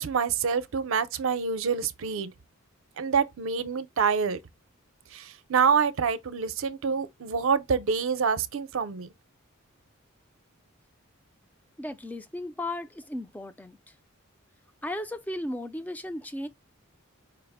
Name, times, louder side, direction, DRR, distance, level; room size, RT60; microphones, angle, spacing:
voice 1, 0.0-2.3 3.0-4.4 5.1-9.1, right 6 dB, 65° right, 0.5 m, -26 dB
voice 2, 11.8-13.8 14.8-16.5, left 1 dB, 5° left, 0.4 m, -35 dB
4.9 x 2.0 x 3.4 m
head